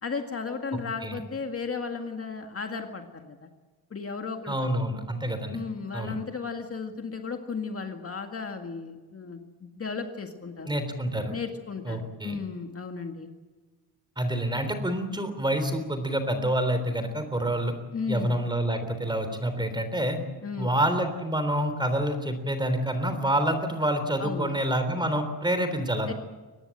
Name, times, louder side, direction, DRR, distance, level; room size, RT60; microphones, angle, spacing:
voice 1, 0.0-3.5 3.9-4.6 5.5-10.8 11.3-13.3 17.9-18.4 20.4-20.7 24.2-24.5 26.1-26.2, left 5 dB, 35° left, 5 dB, 1.9 m, -35 dB
voice 2, 4.5-5.6 5.9-6.1 10.6-11.3 11.9-12.4 14.2-17.7 18.1-20.2 20.6-26.1, right 1 dB, 10° right, 9 dB, 3.5 m, -27 dB
24.0 x 19.5 x 9.0 m, 1.3 s
wide cardioid pair, 160°, 39 cm